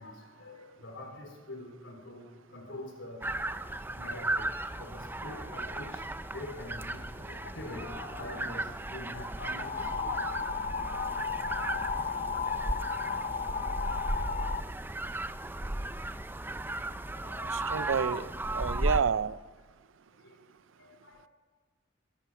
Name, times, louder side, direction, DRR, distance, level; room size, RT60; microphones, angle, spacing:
voice 1, 0.0-3.3 3.9-10.8 12.3-12.4 12.8-13.8 14.6-14.8 16.7-16.8 17.1-17.7 20.2-20.4 20.8-21.3, left 2 dB, 85° left, 3 dB, 3.4 m, -45 dB
sound 1, 3.2-19.0, right 1 dB, 10° right, 0.5 m, -36 dB
sound 2, 9.6-14.6, left 5 dB, 40° left, 0.5 m, -34 dB
voice 2, 17.5-19.4, right 6 dB, 90° right, 18 dB, 0.5 m, -30 dB
21.5 x 11.5 x 6.0 m, 1.5 s
head